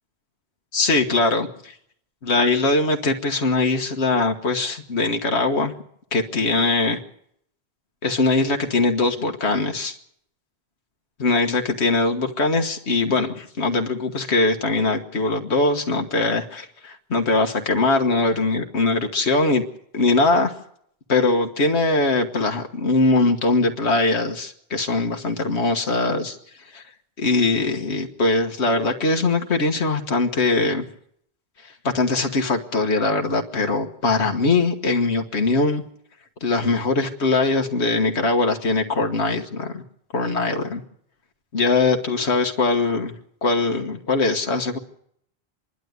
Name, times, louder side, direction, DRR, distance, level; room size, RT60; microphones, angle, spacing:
voice 1, 0.7-1.7 2.2-5.7 6.1-7.0 8.0-10.0 11.2-19.6 19.9-20.5 21.1-26.4 26.7-26.8 27.2-30.9 31.8-35.8 36.4-39.8 40.1-40.8 41.5-43.1 43.4-44.8, left 3 dB, 85° left, 3 dB, 1.7 m, -21 dB
26.5 x 12.0 x 9.4 m, 0.70 s
omnidirectional pair, 1.1 m